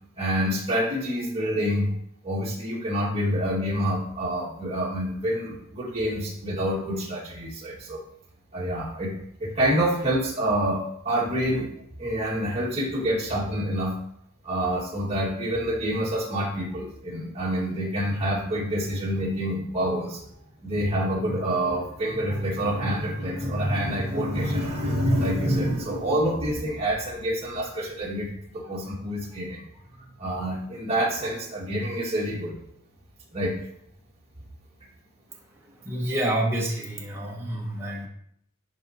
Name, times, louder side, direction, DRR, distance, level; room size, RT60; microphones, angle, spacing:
voice 1, 0.2-1.9 2.2-8.0 8.5-9.1 9.4-11.7 12.0-14.0 14.4-20.2 20.6-29.6 30.0-32.5 33.3-33.5, equal, 30° right, -4 dB, 1.8 m, -27 dB
voice 2, 35.8-38.1, right 1 dB, 10° right, -2 dB, 0.7 m, -28 dB
11.0 x 3.9 x 2.9 m, 0.70 s
head